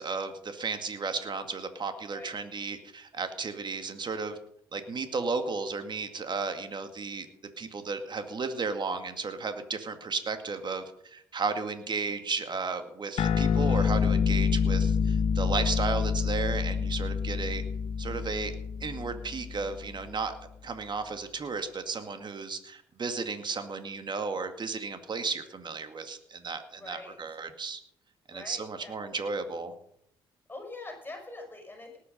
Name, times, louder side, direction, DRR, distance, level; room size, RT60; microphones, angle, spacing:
voice 1, 0.0-4.4 4.7-7.3 7.6-17.6 18.0-18.5 18.8-20.4 20.6-27.8 28.3-29.7, right 4 dB, 45° right, 8 dB, 2.1 m, -34 dB
sound 1, 13.2-20.0, left 6 dB, 65° left, 1.0 m, -27 dB
voice 2, 26.8-27.4 28.3-29.3 30.5-32.0, left 2 dB, 20° left, 2 dB, 5.6 m, -44 dB
18.5 x 8.5 x 5.4 m, 0.70 s
hypercardioid pair, 50°, 11 cm